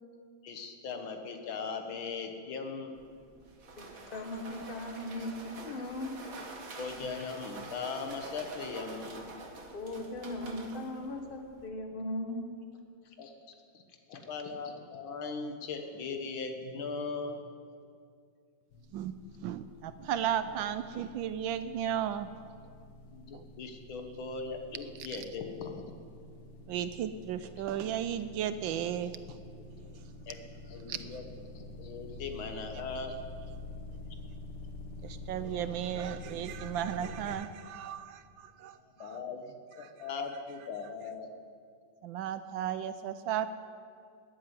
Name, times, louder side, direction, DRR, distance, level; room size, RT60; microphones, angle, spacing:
voice 1, 0.4-2.9 6.8-9.3 13.2-13.3 13.7-13.8 14.1-17.4 23.1-25.8 30.3-30.4 30.7-31.2 31.6-33.2 39.0-41.3, left 4 dB, 80° left, 5 dB, 2.0 m, -39 dB
sound 1, 2.9-11.7, right 3 dB, 45° right, 1.8 m, -47 dB
voice 2, 3.8-6.1 9.7-12.5 14.1-14.2, left 1 dB, 30° left, 4 dB, 1.3 m, -38 dB
sound 2, 18.7-37.3, left 2 dB, 60° left, 1.9 m, -48 dB
voice 3, 18.9-22.4 23.3-23.4 25.1-25.3 26.7-29.4 30.9-31.2 32.9-33.1 35.0-39.2 39.8-40.4 40.8-41.1 42.0-43.6, right 9 dB, 75° right, 12 dB, 1.3 m, -35 dB
13.5 x 8.6 x 9.6 m, 2.3 s
omnidirectional pair, 2.2 m